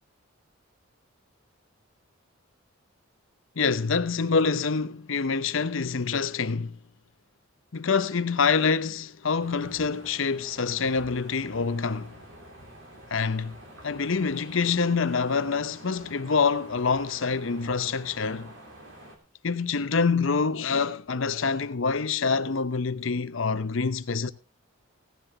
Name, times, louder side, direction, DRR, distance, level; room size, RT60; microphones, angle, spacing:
voice 1, 3.6-6.8 7.7-12.1 13.1-13.6 13.8-18.5 19.4-24.3, left 5 dB, 65° left, 0.7 m, -26 dB
sound 1, 9.4-19.2, right 1 dB, 60° right, 3.4 m, -48 dB
16.5 x 10.0 x 3.8 m
head